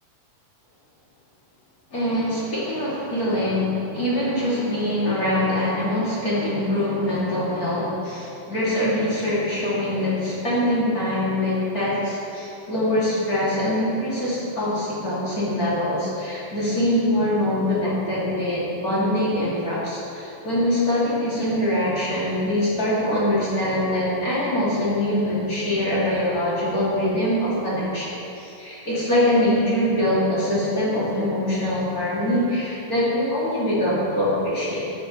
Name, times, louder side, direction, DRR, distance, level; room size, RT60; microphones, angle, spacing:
voice 1, 1.9-34.9, left 1 dB, 30° left, -8 dB, 2.9 m, -23 dB
15.0 x 11.0 x 3.2 m, 2.9 s
omnidirectional pair, 3.7 m